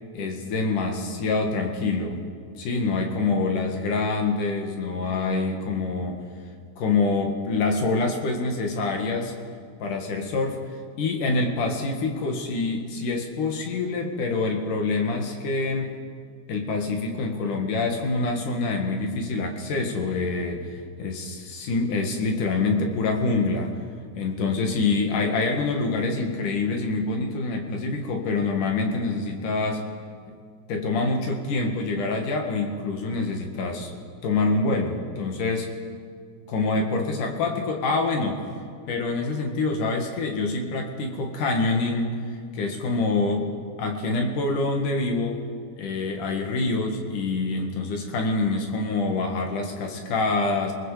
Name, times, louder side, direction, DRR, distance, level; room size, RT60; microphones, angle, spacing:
voice 1, 0.1-2.2 2.6-6.2 6.8-9.3 9.8-10.6 11.0-16.0 16.5-23.7 24.2-29.8 30.7-33.9 34.2-35.7 36.5-38.4 38.9-42.1 42.5-45.4 45.8-50.7, left 3 dB, 80° left, 3 dB, 3.4 m, -26 dB
27.5 x 19.5 x 5.0 m, 2.1 s
omnidirectional pair, 3.6 m